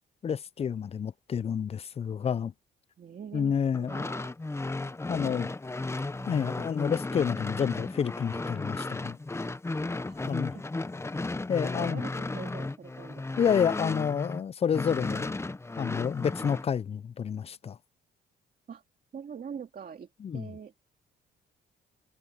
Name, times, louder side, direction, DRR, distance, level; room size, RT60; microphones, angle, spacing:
voice 1, 0.2-2.5 3.3-4.1 5.1-5.5 6.3-9.2 10.2-10.5 11.5-12.0 13.4-15.4 15.8-17.8 20.2-20.5, left 7 dB, 30° left, 0.4 m, -29 dB
voice 2, 3.0-4.4 10.0-10.3 10.5-10.6 11.6-13.5 18.7-18.8 19.1-20.7, right 7 dB, 45° right, 2.1 m, -44 dB
sound 1, 3.7-14.4 14.7-16.7, left 2 dB, 15° left, 0.8 m, -34 dB
cardioid pair, 90°, 20 cm